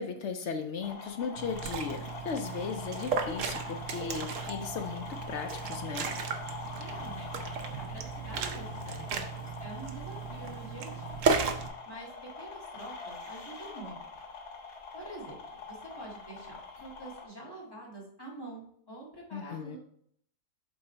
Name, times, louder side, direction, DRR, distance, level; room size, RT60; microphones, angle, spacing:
voice 1, 0.0-6.1 19.3-19.8, left 5 dB, 65° left, 6 dB, 0.7 m, -37 dB
sound 1, 0.8-17.2, left 4 dB, 85° left, 2.0 m, -44 dB
Liquid, 1.4-11.7, right 5 dB, 60° right, 1.0 m, -35 dB
voice 2, 6.8-11.3 11.9-12.1 12.4-14.0 14.9-19.8, right 2 dB, 15° left, -5 dB, 1.8 m, -46 dB
7.9 x 3.8 x 4.3 m, 0.66 s
omnidirectional pair, 1.6 m